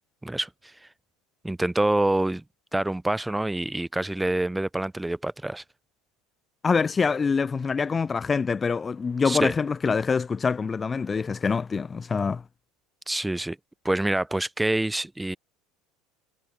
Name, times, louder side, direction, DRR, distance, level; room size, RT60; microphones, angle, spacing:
voice 1, 0.2-0.9 1.4-2.4 2.7-5.6 9.2-9.5 13.1-13.6 13.8-15.4, right 1 dB, 5° right, 3.5 m, -26 dB
voice 2, 6.6-12.4, left 5 dB, 25° left, 1.4 m, -25 dB
supercardioid pair, 100°, 0 cm